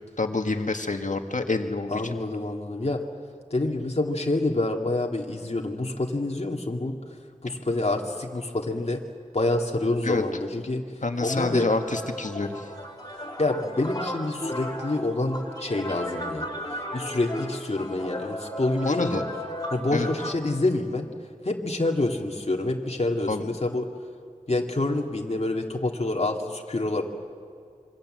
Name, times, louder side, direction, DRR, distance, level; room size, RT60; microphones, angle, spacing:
voice 1, 0.2-2.2 10.0-10.4 11.0-12.7 18.8-19.2 19.9-20.1 23.3-23.4, left 3 dB, 70° left, 5 dB, 1.9 m, -27 dB
voice 2, 1.9-3.0 3.5-7.0 7.4-9.0 9.3-10.8 11.2-11.7 13.4-16.5 16.9-19.2 19.7-21.1 21.4-23.9 24.5-27.0, left 2 dB, 50° left, 1 dB, 2.2 m, -27 dB
sound 1, 11.3-20.3, equal, 30° left, 4.0 m, -35 dB
27.0 x 23.5 x 7.8 m, 2.3 s
wide cardioid pair, 55°, 13 cm